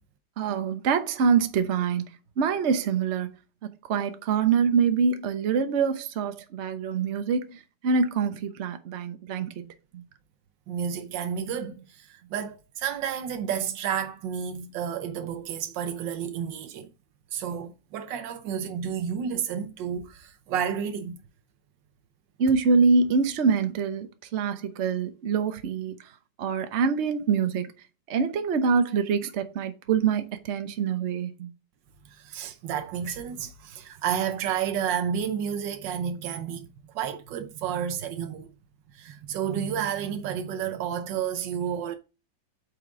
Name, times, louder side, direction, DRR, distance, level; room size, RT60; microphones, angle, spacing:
voice 1, 0.4-2.0 2.4-3.3 3.6-9.7 9.9-10.0 22.4-26.0 26.4-27.7 28.1-31.5, right 5 dB, 50° right, 1.0 m, -25 dB
voice 2, 10.7-16.9 17.3-21.2 32.0-38.5 38.9-42.0, right 8 dB, 85° right, 1.5 m, -31 dB
8.3 x 5.0 x 3.7 m
omnidirectional pair, 1.9 m